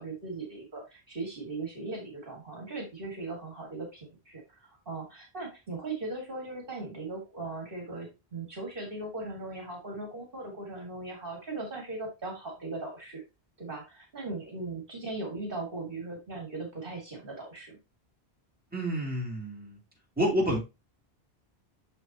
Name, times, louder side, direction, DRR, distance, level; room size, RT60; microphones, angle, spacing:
voice 1, 0.0-13.2 13.6-17.8, right 3 dB, 55° right, 0 dB, 2.2 m, -39 dB
voice 2, 18.7-19.8 20.2-20.6, equal, 10° right, -4 dB, 3.1 m, -28 dB
6.8 x 6.6 x 2.8 m, 0.25 s
omnidirectional pair, 1.1 m